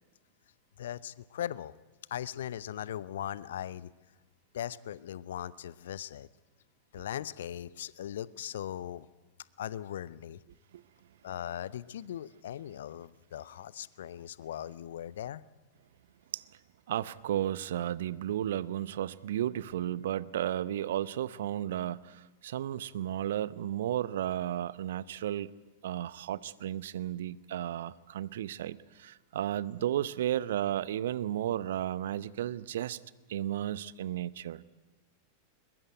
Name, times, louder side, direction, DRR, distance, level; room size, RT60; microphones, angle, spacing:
voice 1, 0.8-1.7 2.1-3.9 4.5-6.3 6.9-9.1 9.6-10.4 11.2-15.4, left 11 dB, 60° left, 19 dB, 0.8 m, -39 dB
voice 2, 16.9-25.5 25.8-33.0 33.3-34.6, right 11 dB, 60° right, 20 dB, 0.7 m, -33 dB
22.0 x 21.5 x 9.1 m, 1.2 s
figure-of-eight pair, 90°, 0 cm